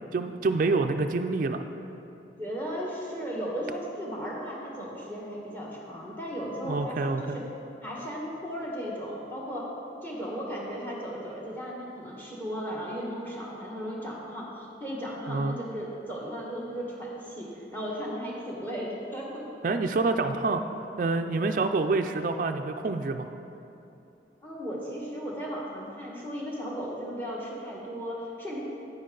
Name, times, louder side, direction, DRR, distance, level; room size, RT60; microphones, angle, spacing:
voice 1, 0.1-1.6 6.6-7.4 15.3-15.6 19.6-20.6 21.0-23.3, right 3 dB, 50° right, 6 dB, 0.3 m, -27 dB
voice 2, 2.4-7.5 7.8-9.7 10.0-19.5 24.4-28.6, equal, 10° left, -3 dB, 1.5 m, -36 dB
9.4 x 9.2 x 3.8 m, 2.9 s
head